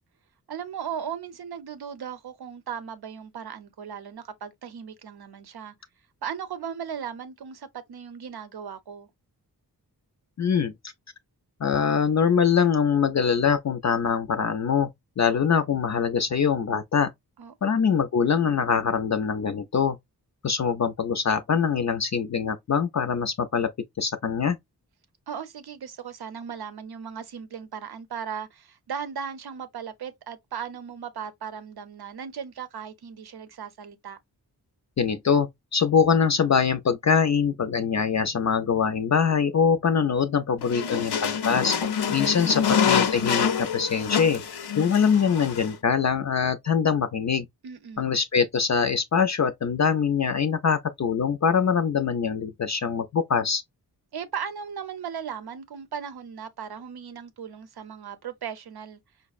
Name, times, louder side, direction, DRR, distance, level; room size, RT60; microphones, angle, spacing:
voice 1, 0.5-5.7 6.2-9.1 17.4-17.8 25.3-34.2 47.6-48.1 54.1-59.0, right 7 dB, 75° right, 0.7 m, -37 dB
voice 2, 10.4-10.7 11.6-14.9 15.2-17.1 17.6-20.0 20.4-23.7 24.0-24.6 35.0-41.8 42.1-44.4 44.8-47.5 48.0-53.6, left 6 dB, 45° left, 0.4 m, -23 dB
sound 1, 40.6-45.7, left 7 dB, 85° left, 0.7 m, -26 dB
5.2 x 2.0 x 2.3 m
wide cardioid pair, 120°, 38 cm